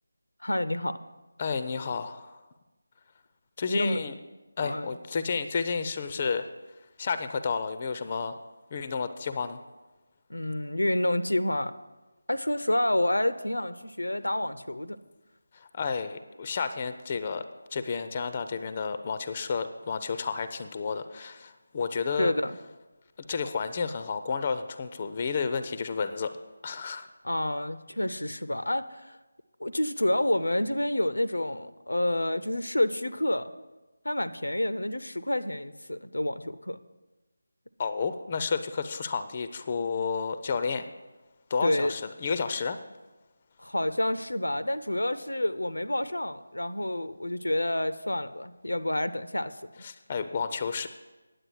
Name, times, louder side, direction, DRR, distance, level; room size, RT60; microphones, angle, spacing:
voice 1, 0.4-1.0 3.7-4.0 4.6-4.9 10.3-11.7 12.3-15.0 22.2-22.6 27.2-29.2 29.6-33.5 34.0-36.8 41.6-41.9 43.6-49.8, left 1 dB, 80° left, 12 dB, 0.6 m, -28 dB
voice 2, 1.4-2.4 3.6-4.1 4.6-6.5 7.0-8.4 8.7-9.6 15.5-17.4 17.7-22.3 23.2-26.3 26.6-27.1 37.8-40.9 41.5-42.8 49.8-50.9, left 5 dB, 30° left, 11 dB, 0.5 m, -31 dB
9.7 x 7.8 x 6.3 m, 1.1 s
figure-of-eight pair, 160°, 0 cm